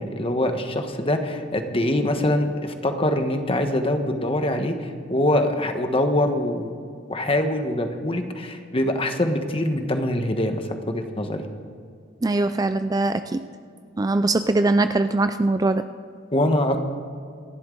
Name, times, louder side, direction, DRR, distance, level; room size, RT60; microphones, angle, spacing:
voice 1, 0.0-6.7 7.1-11.4 16.3-16.8, left 1 dB, 30° left, 6 dB, 1.3 m, -24 dB
voice 2, 12.2-13.4 14.0-15.8, right 2 dB, 20° right, 10 dB, 0.3 m, -21 dB
27.5 x 11.5 x 3.9 m, 2.3 s
head